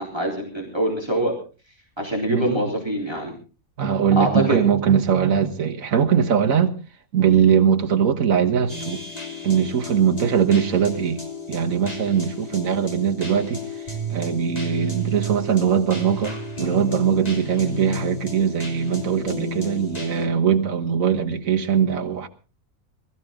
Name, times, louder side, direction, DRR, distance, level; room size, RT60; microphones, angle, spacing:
voice 1, 0.0-1.3 2.0-3.3 4.2-4.6, right 1 dB, 20° right, 3.7 m, -24 dB
voice 2, 2.3-2.6 3.8-6.7 7.1-9.0 9.4-11.2 11.5-13.7 14.1-22.3, right 8 dB, 80° right, 1.7 m, -21 dB
sound 1, 8.7-20.3, left 1 dB, 30° left, 2.8 m, -32 dB
21.5 x 14.0 x 3.7 m
omnidirectional pair, 1.4 m